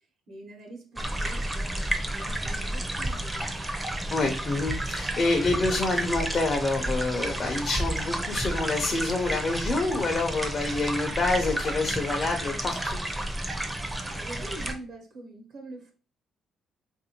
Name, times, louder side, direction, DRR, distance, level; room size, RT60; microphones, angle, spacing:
voice 1, 0.0-3.6 14.1-15.9, right 2 dB, 65° right, 1 dB, 1.0 m, -44 dB
Streamlet (extremely subtle soft & magical), 1.0-14.7, right 1 dB, 15° right, 0.6 m, -31 dB
voice 2, 4.1-13.0, left 3 dB, 40° left, 2 dB, 0.7 m, -27 dB
3.5 x 2.6 x 2.9 m, 0.37 s
cardioid pair, 90°, 0 cm